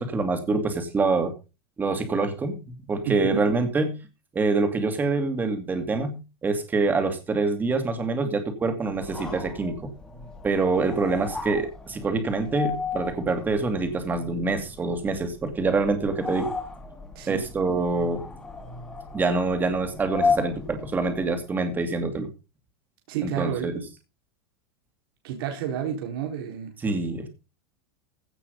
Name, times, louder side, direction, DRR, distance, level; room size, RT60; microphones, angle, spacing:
voice 1, 0.0-1.3 1.8-2.6 2.9-4.0 4.3-9.9 10.4-16.5 17.3-18.3 19.1-22.3 23.2-23.8 26.8-27.3, right 3 dB, 15° right, 2.5 m, -25 dB
voice 2, 3.0-3.5 17.1-17.5 23.1-23.8 25.2-26.7, right 9 dB, 65° right, 4.1 m, -31 dB
sound 1, 8.9-21.5, left 4 dB, 5° left, 2.5 m, -34 dB
16.0 x 6.3 x 5.3 m
supercardioid pair, 160°, 13 cm